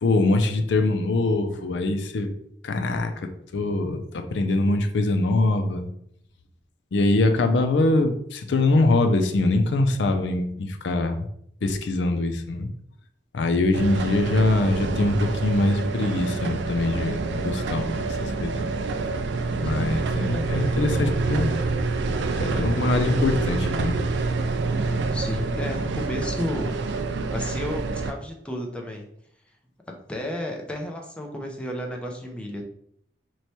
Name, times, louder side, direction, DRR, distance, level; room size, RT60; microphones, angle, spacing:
voice 1, 0.0-2.3 2.6-5.9 6.9-11.3 11.6-12.7 13.3-17.9 18.2-18.6 19.6-21.5 22.4-24.0, left 2 dB, 85° left, 7 dB, 0.4 m, -23 dB
sound 1, 13.7-28.1, right 3 dB, 85° right, 0.4 m, -27 dB
voice 2, 24.9-26.7 27.3-29.0 30.1-32.6, left 1 dB, 5° left, 1 dB, 0.5 m, -32 dB
3.1 x 2.2 x 4.2 m, 0.69 s
head